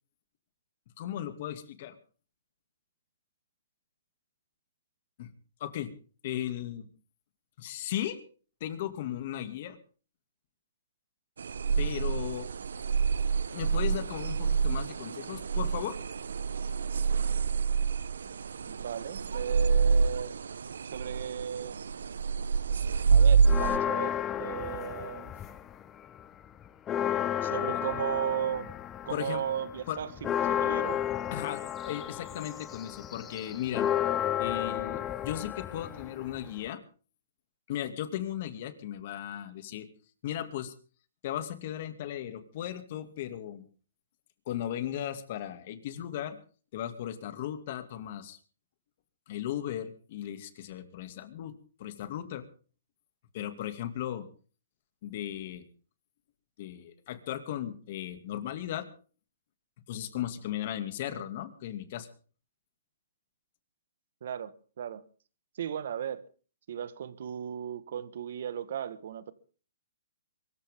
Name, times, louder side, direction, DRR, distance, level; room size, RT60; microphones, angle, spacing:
voice 1, 1.0-2.0 5.2-5.3 5.6-5.9 6.2-6.9 7.6-8.2 8.6-9.8 11.8-12.5 13.5-16.0 27.7-27.8 29.1-29.4 29.9-30.0 31.3-33.9 34.4-36.8 37.7-39.9 40.2-40.7 41.2-43.7 44.5-46.4 46.7-48.4 49.3-52.4 53.3-54.2 55.0-55.7 56.6-58.9 59.9-62.1, left 11 dB, 45° left, 2.4 m, -36 dB
sound 1, 11.4-23.8, right 5 dB, 85° right, 0.7 m, -27 dB
voice 2, 18.6-20.3 20.9-21.8 23.1-24.1 24.4-25.3 27.4-28.7 29.0-30.1 30.5-31.0 64.2-65.0 65.6-66.2 66.7-69.3, right 9 dB, 60° right, 1.6 m, -35 dB
sound 2, 23.4-25.8 26.2-36.7, left 10 dB, 15° left, 0.9 m, -32 dB
23.5 x 14.5 x 3.8 m
hypercardioid pair, 155°, 0 cm